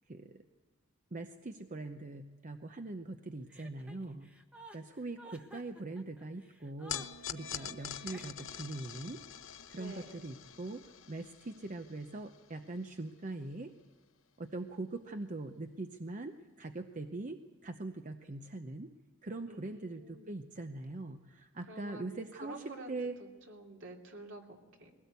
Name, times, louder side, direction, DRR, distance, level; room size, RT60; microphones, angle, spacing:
voice 1, 0.1-0.4 1.1-4.3 4.7-9.2 9.7-13.7 14.4-18.9 19.2-23.2, right 2 dB, 35° right, 7 dB, 0.7 m, -42 dB
Chuckle chortle, 3.5-8.7, right 1 dB, 5° right, 1.1 m, -54 dB
sound 1, 6.9-13.3, left 9 dB, 65° left, 0.9 m, -45 dB
voice 2, 9.7-10.1 19.5-20.4 21.7-23.0 23.5-24.9, right 1 dB, 60° right, 1 dB, 2.8 m, -49 dB
21.5 x 17.0 x 8.2 m, 1.3 s
head